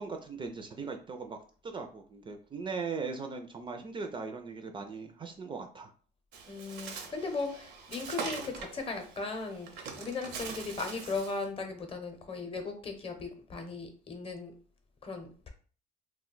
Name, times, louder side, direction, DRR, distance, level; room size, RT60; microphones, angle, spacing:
voice 1, 0.0-1.4 1.6-5.9, right 4 dB, 30° right, 5 dB, 0.4 m, -39 dB
Bird, 6.3-11.4, right 5 dB, 80° right, 0.6 m, -42 dB
voice 2, 6.5-14.5 15.0-15.5, left 3 dB, 35° left, 5 dB, 0.7 m, -37 dB
2.3 x 2.2 x 3.8 m, 0.41 s
cardioid pair, 110°, 17 cm